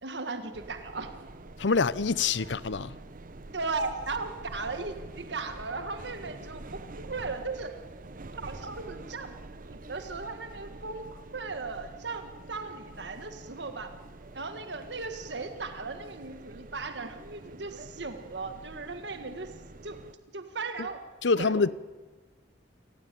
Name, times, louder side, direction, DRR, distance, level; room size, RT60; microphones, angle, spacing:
voice 1, 0.0-1.3 3.5-7.8 8.4-9.4 9.6-13.9 14.3-19.5 19.8-20.0 20.3-21.0 21.4-21.7, right 3 dB, 70° right, 1.7 m, -37 dB
sound 1, 0.5-20.1, right 2 dB, 50° right, 0.8 m, -46 dB
voice 2, 1.6-3.0 20.8-20.9 21.2-21.7, left 4 dB, 80° left, 0.8 m, -26 dB
28.0 x 17.5 x 9.3 m
head